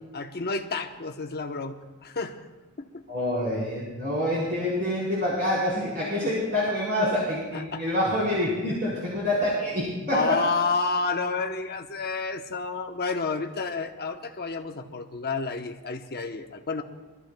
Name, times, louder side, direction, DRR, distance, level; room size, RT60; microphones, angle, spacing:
voice 1, 0.1-2.4 2.8-3.0 7.5-7.8 10.1-16.8, left 4 dB, 45° left, 4 dB, 1.0 m, -30 dB
voice 2, 3.1-10.4, left 1 dB, 50° right, -6 dB, 4.3 m, -26 dB
25.5 x 13.5 x 2.3 m, 1.2 s
head